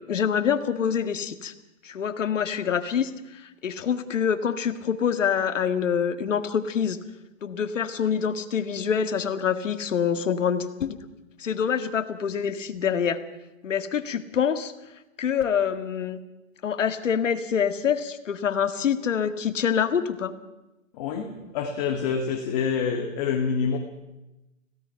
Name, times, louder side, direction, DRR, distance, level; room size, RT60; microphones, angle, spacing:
voice 1, 0.0-1.5 1.8-3.1 3.6-7.0 7.4-11.0 11.4-13.2 13.6-14.7 15.2-16.2 16.6-20.3, left 7 dB, 70° left, 9 dB, 2.1 m, -26 dB
voice 2, 20.9-23.8, left 6 dB, 30° left, 3 dB, 2.0 m, -27 dB
26.5 x 17.0 x 5.8 m, 0.99 s
hypercardioid pair, 145°, 39 cm